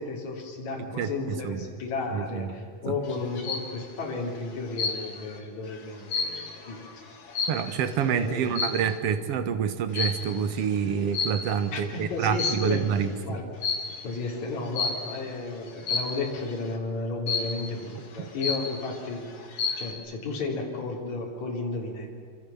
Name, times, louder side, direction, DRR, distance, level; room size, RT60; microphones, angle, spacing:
voice 1, 0.0-6.8 7.3-7.5 8.1-8.6 11.7-13.6 14.0-19.3 19.7-22.1, left 3 dB, 60° left, -1 dB, 4.9 m, -33 dB
voice 2, 1.0-1.6 2.1-2.5 2.9-3.0 7.5-13.4 18.2-18.3, right 7 dB, 55° right, 10 dB, 2.0 m, -27 dB
sound 1, 3.1-3.7 4.8-5.3 5.7-7.9 8.5-8.9 9.9-10.3 11.1-11.7 12.2-12.9 13.6-14.0 14.8-15.2 15.9-16.3 17.3-17.7 18.1-18.2 18.4-19.0 19.4-19.9, left 5 dB, 75° left, 4.6 m, -30 dB
27.0 x 26.5 x 7.2 m, 2.2 s
omnidirectional pair, 3.8 m